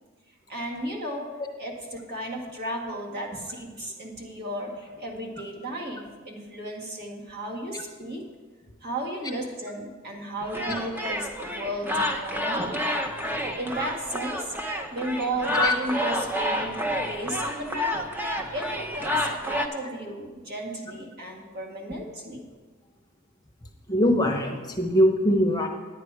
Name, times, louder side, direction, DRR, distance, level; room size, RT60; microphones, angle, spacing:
voice 1, 0.5-8.3 8.8-12.8 13.2-14.5 14.9-18.0 18.5-22.4, right 1 dB, 50° right, -1 dB, 1.9 m, -34 dB
sound 1, 10.4-19.7, equal, 10° right, 0.7 m, -29 dB
voice 2, 23.9-25.7, left 1 dB, 20° left, 2 dB, 0.9 m, -22 dB
10.5 x 9.2 x 4.8 m, 1.4 s
head